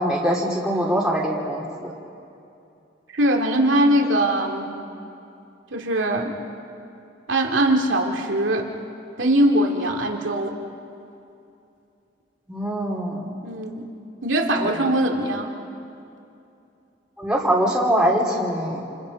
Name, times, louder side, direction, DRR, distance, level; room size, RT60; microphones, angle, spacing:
voice 1, 0.0-1.9 12.5-13.3 14.6-14.8 17.2-18.8, equal, 5° right, -4 dB, 3.0 m, -23 dB
voice 2, 3.1-4.7 5.7-6.3 7.3-8.7 9.2-10.6 13.4-13.9 14.2-15.5, right 1 dB, 75° right, 1 dB, 2.6 m, -21 dB
29.0 x 28.0 x 5.4 m, 2.7 s
head